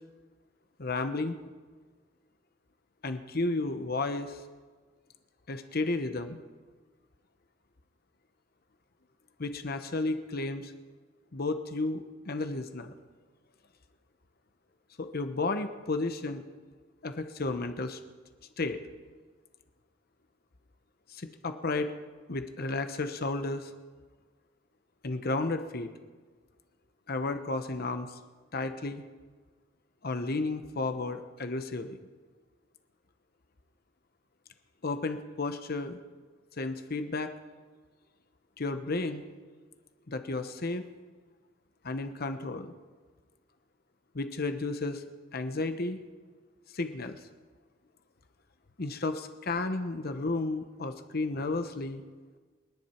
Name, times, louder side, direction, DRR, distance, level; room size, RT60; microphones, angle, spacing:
voice 1, 0.8-1.4 3.0-4.4 5.5-6.4 9.4-10.7 11.3-12.9 15.0-16.4 17.0-18.0 18.6-18.8 21.1-21.9 22.3-23.7 25.0-25.9 27.1-28.2 28.5-29.0 30.0-32.0 34.8-36.0 36.6-37.3 38.6-39.2 40.1-40.8 41.8-42.7 44.1-45.0 45.3-46.0 46.7-47.2 48.8-52.0, left 3 dB, 50° left, 8 dB, 1.0 m, -32 dB
29.5 x 11.0 x 4.5 m, 1.4 s
head